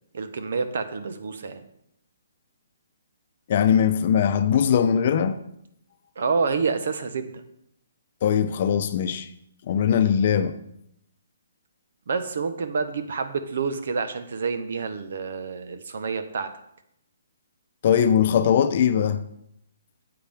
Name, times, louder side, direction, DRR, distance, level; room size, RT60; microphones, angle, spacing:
voice 1, 0.1-1.6 6.2-7.4 12.1-16.5, right 5 dB, 65° right, 1.1 m, -28 dB
voice 2, 3.5-5.4 8.2-9.3 9.7-10.6 17.8-19.2, left 8 dB, 45° left, 0.7 m, -20 dB
9.7 x 7.8 x 3.6 m
hypercardioid pair, 155°, 0 cm